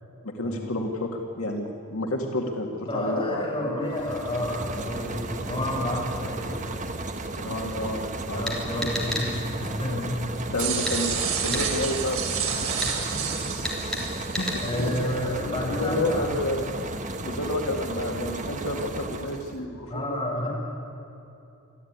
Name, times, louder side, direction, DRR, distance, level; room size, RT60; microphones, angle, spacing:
voice 1, 0.2-4.0 7.4-9.1 10.5-12.7 14.4-14.9 15.8-17.0 17.2-20.5, left 1 dB, 80° left, 2 dB, 2.0 m, -30 dB
voice 2, 2.9-6.6 8.3-10.2 12.8-13.2 14.5-16.3 19.9-20.5, left 1 dB, 20° left, -4 dB, 6.6 m, -30 dB
sound 1, 3.8-19.6, right 2 dB, 35° right, 1.2 m, -34 dB
sound 2, 8.5-9.3 10.9-11.0 11.5-11.6 12.8-12.9 13.6-14.0 14.3-14.6, left 1 dB, 5° left, 3.5 m, -30 dB
sound 3, 10.6-15.0, right 6 dB, 85° right, 3.4 m, -30 dB
25.5 x 14.0 x 9.6 m, 2.9 s
head